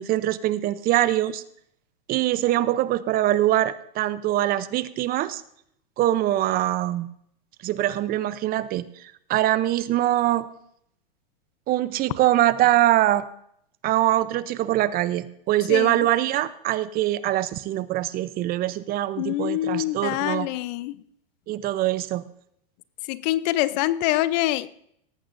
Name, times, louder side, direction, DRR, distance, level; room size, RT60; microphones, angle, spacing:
voice 1, 0.0-1.4 2.1-5.4 6.0-7.1 7.6-10.5 11.7-13.2 13.8-20.5 21.5-22.3, right 14 dB, 30° right, 15 dB, 0.7 m, -23 dB
voice 2, 15.7-16.1 19.2-21.0 23.1-24.7, left 16 dB, 45° left, 17 dB, 0.7 m, -25 dB
18.0 x 14.5 x 2.6 m, 0.70 s
hypercardioid pair, 120°, 29 cm